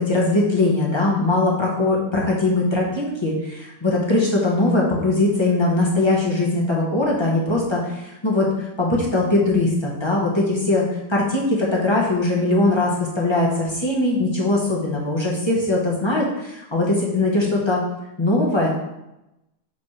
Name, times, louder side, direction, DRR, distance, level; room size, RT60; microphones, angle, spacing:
voice 1, 0.0-17.8 18.2-18.7, left 2 dB, 30° left, -4 dB, 0.4 m, -21 dB
6.9 x 5.1 x 3.2 m, 0.91 s
omnidirectional pair, 2.4 m